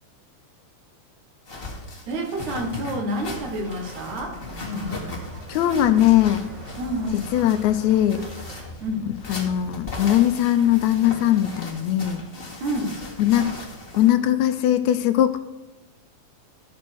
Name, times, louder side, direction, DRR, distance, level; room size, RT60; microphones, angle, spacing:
sound 1, 1.5-14.1, left 2 dB, 25° left, 1.4 m, -37 dB
voice 1, 2.1-4.4 6.8-7.3 8.8-9.1 12.6-13.0, right 1 dB, 75° right, 2 dB, 3.1 m, -28 dB
sound 2, 3.4-8.7, right 1 dB, 50° right, 1.4 m, -44 dB
sound 3, 4.8-9.9, left 2 dB, 65° left, 2.9 m, -42 dB
voice 2, 5.5-6.4 7.3-8.2 9.3-12.2 13.2-13.6 13.9-15.4, left 12 dB, 80° left, 10 dB, 1.9 m, -20 dB
13.0 x 6.0 x 4.6 m, 1.0 s
omnidirectional pair, 3.4 m